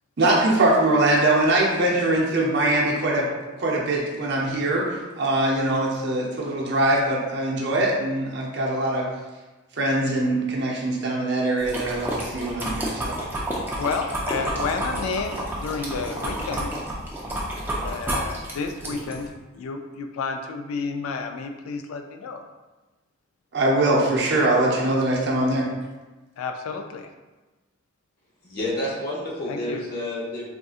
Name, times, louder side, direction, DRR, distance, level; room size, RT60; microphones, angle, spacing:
voice 1, 0.2-3.3 3.6-9.1 9.8-13.2 23.5-25.7, right 1 dB, 55° right, -2 dB, 0.6 m, -22 dB
sound 1, 11.6-19.3, right 1 dB, 10° right, 0.4 m, -30 dB
voice 2, 13.8-16.7 17.8-19.3 19.5-22.4 26.4-27.1 29.5-29.8, left 4 dB, 90° left, 6 dB, 0.3 m, -31 dB
voice 3, 28.4-30.5, left 1 dB, 50° left, -4 dB, 0.8 m, -29 dB
3.7 x 2.6 x 2.3 m, 1.2 s
head